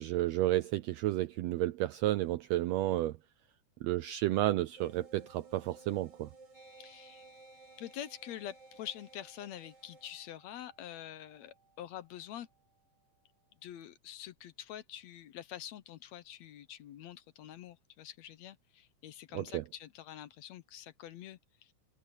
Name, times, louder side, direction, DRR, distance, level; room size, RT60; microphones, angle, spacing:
voice 1, 0.0-3.2 3.8-6.3 19.3-19.6, right 15 dB, 80° right, 1.5 m, -31 dB
sound 1, 4.8-10.1, right 3 dB, 50° right, 6.9 m, -57 dB
sound 2, 6.5-13.6, right 2 dB, 15° right, 3.8 m, -63 dB
voice 2, 6.8-7.3 7.8-12.5 13.6-21.7, left 11 dB, 70° left, 1.9 m, -46 dB
open air
omnidirectional pair, 3.5 m